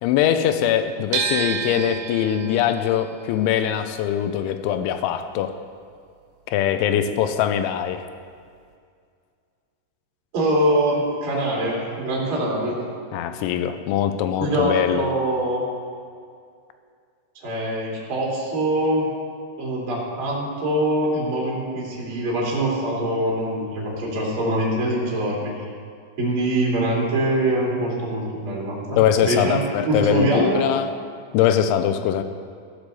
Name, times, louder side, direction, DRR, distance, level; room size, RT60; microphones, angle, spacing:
voice 1, 0.0-5.6 6.5-8.1 13.1-15.1 29.0-30.9 31.3-32.2, left 9 dB, 90° left, 9 dB, 3.1 m, -22 dB
sound 1, 1.1-7.2 7.4-8.7, right 6 dB, 80° right, 3.0 m, -32 dB
voice 2, 10.3-12.8 14.4-15.6 17.4-19.1 19.6-25.7 26.2-30.6, right 1 dB, 30° right, -4 dB, 3.0 m, -23 dB
15.5 x 8.2 x 6.9 m, 2.2 s
omnidirectional pair, 5.3 m